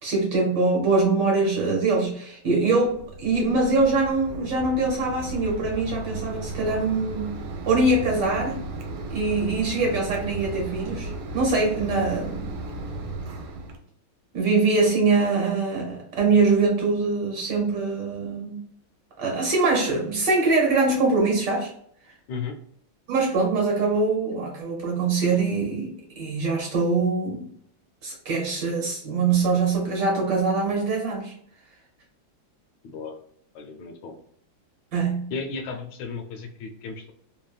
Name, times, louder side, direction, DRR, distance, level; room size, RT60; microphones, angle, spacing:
voice 1, 0.0-7.3 7.7-8.6 9.1-12.6 14.3-18.6 19.2-21.7 23.1-27.5 28.0-31.3 34.9-35.3, right 3 dB, 65° right, -1 dB, 1.3 m, -23 dB
Mechanisms, 2.8-13.8, right 2 dB, 80° right, 1.4 m, -35 dB
voice 2, 32.8-33.1 33.5-34.2 35.3-37.1, left 5 dB, 70° left, 4 dB, 1.2 m, -34 dB
3.3 x 2.1 x 2.3 m, 0.68 s
omnidirectional pair, 2.3 m